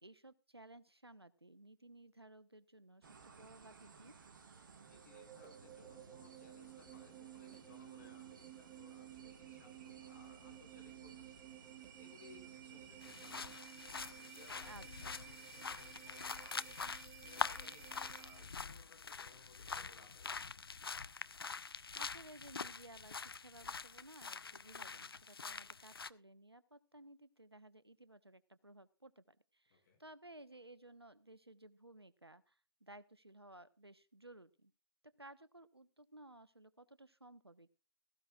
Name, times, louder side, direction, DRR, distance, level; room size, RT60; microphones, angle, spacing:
voice 1, 0.0-4.1 14.6-15.1 21.9-34.7 35.2-37.7, right 1 dB, 90° right, 14 dB, 1.1 m, -58 dB
sound 1, 3.0-13.6, right 5 dB, 55° right, 1.9 m, -59 dB
voice 2, 4.8-11.5 11.9-13.7 14.1-16.7 17.2-20.8 25.4-25.7 29.7-30.0, left 4 dB, 45° left, 2 dB, 7.0 m, -64 dB
sound 2, 4.8-18.7, right 12 dB, 20° right, 1.0 m, -55 dB
sound 3, 13.0-26.1, left 5 dB, 70° left, 0.6 m, -45 dB
17.0 x 15.5 x 2.4 m, 0.32 s
figure-of-eight pair, 130°, 13 cm